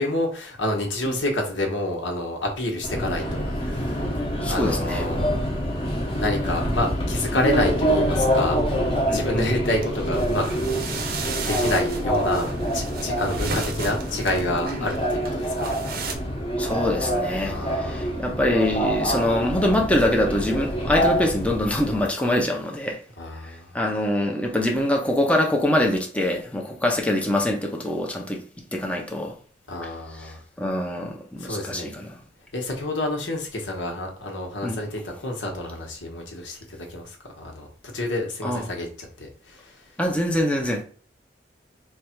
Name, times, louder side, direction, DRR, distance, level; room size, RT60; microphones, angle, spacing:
voice 1, 0.0-4.1 4.5-5.4 6.2-11.0 11.4-15.8 17.4-18.2 23.2-23.8 29.7-30.4 31.4-32.0 32.5-37.7 37.9-39.9, left 1 dB, 80° left, 1.1 m, -29 dB
Subway metro underground, 2.8-22.1, equal, 30° left, 0.9 m, -26 dB
voice 2, 4.4-5.0 9.1-9.5 16.6-23.0 23.5-28.4 28.7-29.4 30.2-30.3 30.6-32.2 34.6-34.8 38.4-38.6 40.0-40.8, left 1 dB, 5° left, 0.5 m, -24 dB
sound 1, 9.8-16.2, right 4 dB, 55° right, 0.7 m, -35 dB
3.3 x 2.3 x 4.4 m
head